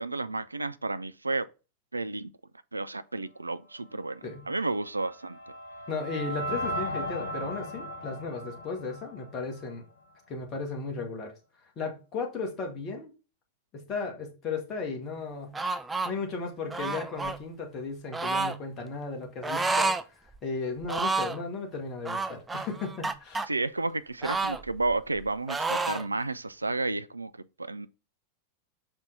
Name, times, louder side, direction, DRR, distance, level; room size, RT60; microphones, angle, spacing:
voice 1, 0.0-1.5 1.9-2.3 2.7-5.4 23.5-27.3 27.6-27.9, right 2 dB, 80° right, 0.3 m, -31 dB
sound 1, 4.6-9.8, equal, 70° left, 2.2 m, -37 dB
voice 2, 5.9-9.8 10.3-11.3 11.8-13.1 13.7-15.5 16.0-23.5, left 4 dB, 30° left, 1.8 m, -35 dB
sound 2, 15.5-16.1 16.7-17.4 18.1-18.6 19.4-20.0 20.3-20.4 20.8-21.4 22.1-23.5 24.2-25.2 25.5-26.1, right 3 dB, 10° right, 0.5 m, -29 dB
5.9 x 4.4 x 3.8 m
figure-of-eight pair, 90°, 0 cm